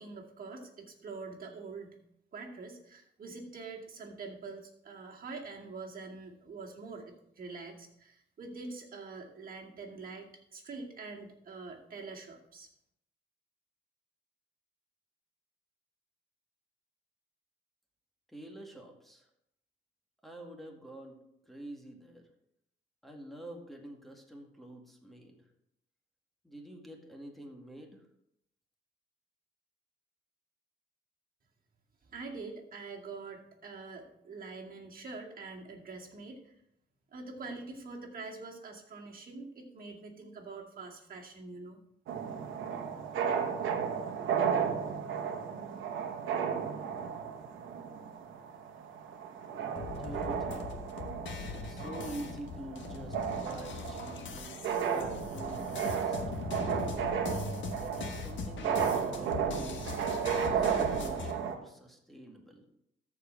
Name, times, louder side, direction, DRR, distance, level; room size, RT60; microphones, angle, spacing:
voice 1, 0.0-2.0 2.3-12.7 32.0-36.5 37.1-41.8, right 3 dB, 45° right, -1 dB, 2.3 m, -45 dB
voice 2, 18.3-19.3 20.2-21.2 21.5-22.3 23.0-25.4 26.4-28.0 50.0-50.7 51.5-56.2 57.7-62.6, right 1 dB, ahead, 0 dB, 2.1 m, -47 dB
sound 1, 42.1-61.5, right 7 dB, 75° right, 1.1 m, -34 dB
sound 2, 49.8-61.3, left 4 dB, 70° left, 1.4 m, -41 dB
13.5 x 4.9 x 4.6 m, 0.76 s
cardioid pair, 90°, 20 cm